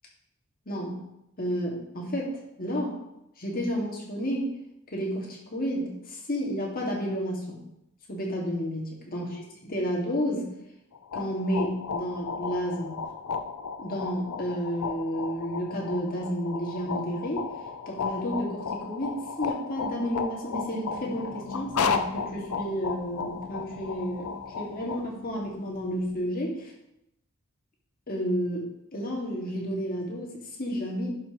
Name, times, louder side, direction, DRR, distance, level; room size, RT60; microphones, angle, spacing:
voice 1, 0.7-1.0 1.4-3.0 3.4-4.5 4.9-7.6 8.1-9.4 9.6-10.5 11.1-13.0 13.8-17.5 17.9-24.3 24.6-26.7 28.1-31.1, equal, 45° left, -3 dB, 2.0 m, -31 dB
sound 1, 10.9-25.0, left 5 dB, 80° left, 0.5 m, -34 dB
sound 2, 20.9-26.2, left 1 dB, 20° left, 2.7 m, -44 dB
11.0 x 5.5 x 3.0 m, 0.84 s
head